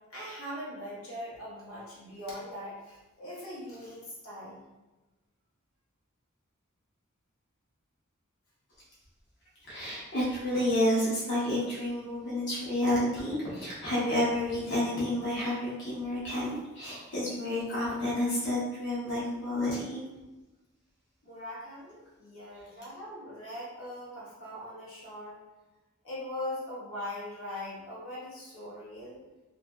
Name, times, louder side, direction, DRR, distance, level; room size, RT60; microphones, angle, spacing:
voice 1, 0.1-4.6 21.2-25.4 26.0-29.2, left 1 dB, 90° left, -7 dB, 1.0 m, -41 dB
voice 2, 9.7-20.0, left 1 dB, 60° left, -8 dB, 0.9 m, -30 dB
2.7 x 2.5 x 2.3 m, 1.1 s
head